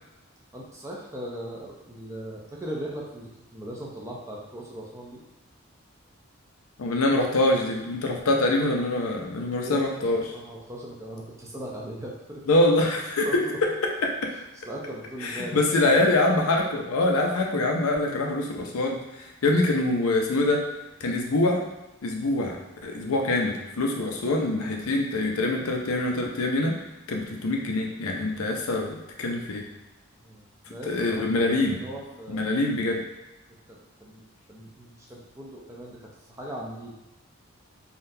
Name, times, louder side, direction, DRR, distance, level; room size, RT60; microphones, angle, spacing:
voice 1, 0.5-5.2 9.6-9.8 10.2-12.4 13.2-13.6 14.6-15.9 30.2-32.5 33.7-36.0 36.3-37.0, right 1 dB, 15° right, -3 dB, 0.4 m, -39 dB
voice 2, 6.8-10.2 12.5-13.4 14.0-14.3 15.2-20.6 21.0-21.6 22.0-26.8 27.1-29.7 30.9-31.8 32.3-33.0, left 2 dB, 80° left, 1 dB, 0.5 m, -24 dB
3.6 x 2.3 x 2.6 m, 1.0 s
head